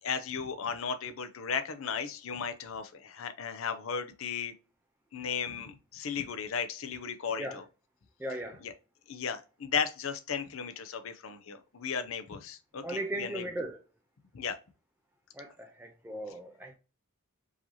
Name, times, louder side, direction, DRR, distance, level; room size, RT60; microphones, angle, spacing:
voice 1, 0.0-4.5 5.1-7.6 8.6-8.7 9.1-13.4 14.3-14.6, left 6 dB, 70° left, 0.5 m, -35 dB
voice 2, 8.2-8.6 12.8-13.8 15.3-16.7, right 1 dB, 10° right, 0.4 m, -37 dB
4.8 x 2.7 x 2.7 m
head